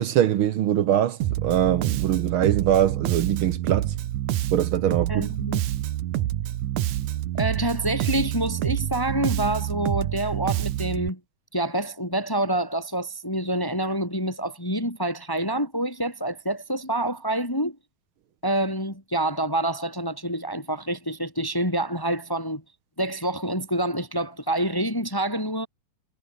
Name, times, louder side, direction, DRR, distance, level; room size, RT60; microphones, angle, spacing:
voice 1, 0.0-3.9 4.5-5.3, right 11 dB, 65° right, 1.3 m, -23 dB
Bass guitar, 1.2-11.1, right 14 dB, 85° right, 2.6 m, -27 dB
voice 2, 5.1-5.6 7.3-11.2 11.5-17.8 18.4-22.6 23.0-25.7, right 1 dB, 5° left, 4.2 m, -27 dB
omnidirectional pair, 3.4 m